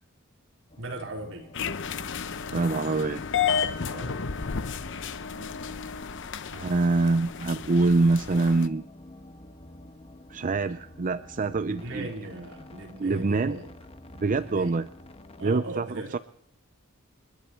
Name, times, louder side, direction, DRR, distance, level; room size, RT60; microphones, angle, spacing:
sound 1, 0.7-15.5, left 1 dB, 30° left, 1.2 m, -49 dB
voice 1, 0.8-1.5 3.8-4.2 5.4-5.7 11.7-13.7 14.3-14.8 15.4-16.2, right 1 dB, 65° right, 1 dB, 4.2 m, -39 dB
sound 2, 1.5-8.7, left 6 dB, 60° left, 0.8 m, -32 dB
voice 2, 2.5-3.2 6.5-8.8 10.3-12.1 13.0-13.6 14.2-14.9 15.4-15.9 16.1-16.2, right 3 dB, 40° right, 11 dB, 0.5 m, -25 dB
29.0 x 11.0 x 4.4 m, 0.72 s
head